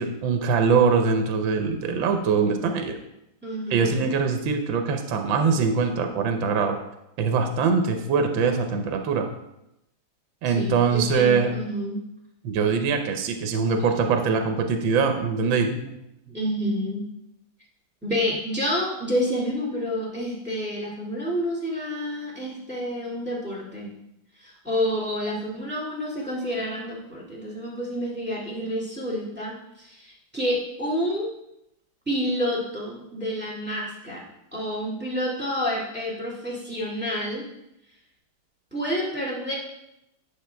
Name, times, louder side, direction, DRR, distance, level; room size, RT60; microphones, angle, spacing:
voice 1, 0.0-3.0 3.7-6.8 7.2-9.2 10.4-11.5 12.4-15.7, right 5 dB, 70° right, 5 dB, 1.5 m, -22 dB
voice 2, 2.3-2.7 3.4-4.1 10.5-12.0 15.7-15.9 16.3-17.0 18.0-24.0 24.4-31.3 32.1-34.2 34.5-37.4 38.7-39.5, equal, 5° right, -4 dB, 1.9 m, -29 dB
9.9 x 6.1 x 3.4 m, 0.86 s
omnidirectional pair, 2.4 m